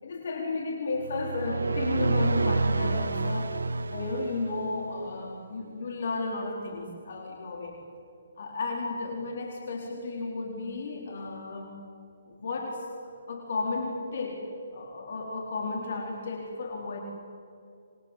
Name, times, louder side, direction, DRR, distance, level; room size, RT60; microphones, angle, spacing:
voice 1, 0.0-3.6 3.9-7.8 8.4-11.8 12.3-14.4 14.7-17.0, left 3 dB, 60° left, 1 dB, 4.3 m, -33 dB
sound 1, 1.0-4.9, right 3 dB, 80° right, 0.9 m, -28 dB
27.5 x 22.0 x 8.4 m, 2.4 s
hypercardioid pair, 145°, 0 cm